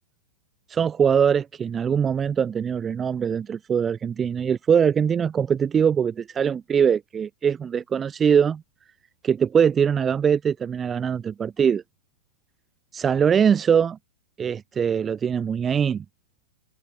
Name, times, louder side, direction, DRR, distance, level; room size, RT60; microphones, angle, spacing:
voice 1, 0.7-8.6 9.2-11.8 12.9-14.0 14.4-16.0, right 7 dB, 15° right, 1.8 m, -22 dB
open air
hypercardioid pair, 145°, 0 cm